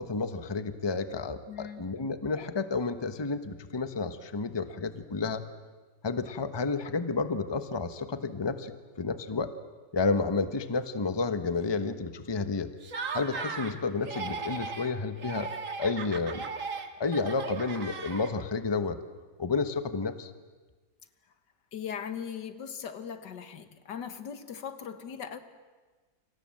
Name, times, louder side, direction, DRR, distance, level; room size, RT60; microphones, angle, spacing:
voice 1, 0.0-5.4 6.0-8.7 9.0-9.5 9.9-12.7 13.1-15.5 15.8-16.4 17.0-19.0 19.4-20.3, left 4 dB, 20° left, 10 dB, 1.0 m, -31 dB
voice 2, 1.5-1.8 21.7-25.4, left 7 dB, 85° left, 10 dB, 2.1 m, -39 dB
Laughter, 12.8-13.8 14.0-14.9 15.2-18.5, right 4 dB, 50° right, 2.0 m, -37 dB
29.0 x 26.0 x 7.7 m, 1.3 s
omnidirectional pair, 1.8 m